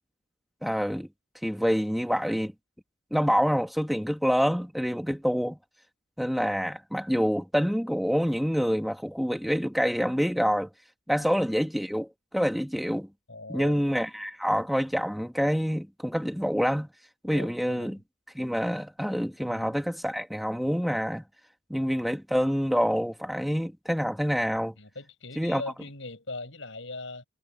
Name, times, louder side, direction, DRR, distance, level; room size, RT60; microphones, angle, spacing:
voice 1, 0.6-1.1 1.4-2.5 3.1-5.6 6.2-10.7 11.1-13.1 13.5-16.9 17.2-18.0 18.3-21.2 21.7-24.7 25.4-25.6, equal, ahead, 1.4 m, -27 dB
voice 2, 13.3-13.8 17.3-18.0 19.5-19.8 24.8-27.3, left 2 dB, 75° left, 6.5 m, -40 dB
head